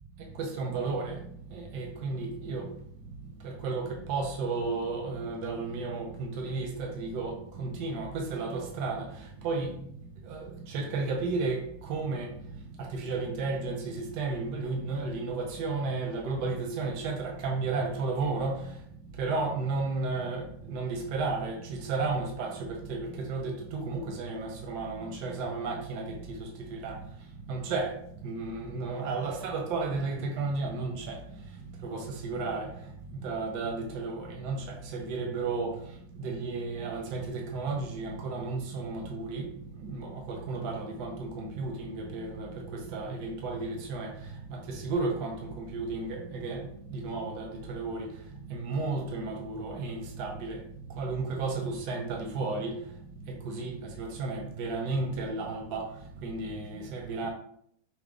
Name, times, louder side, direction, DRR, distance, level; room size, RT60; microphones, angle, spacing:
voice 1, 0.3-1.2 1.5-2.7 3.4-9.8 10.2-12.3 12.8-18.7 19.2-27.0 27.5-28.0 28.2-31.2 31.8-32.8 33.1-35.8 36.1-39.5 39.8-48.1 48.5-50.6 50.9-52.8 53.3-55.9 56.2-57.3, right 3 dB, 90° right, 1.2 m, -33 dB
5.9 x 2.1 x 3.7 m
omnidirectional pair, 1.7 m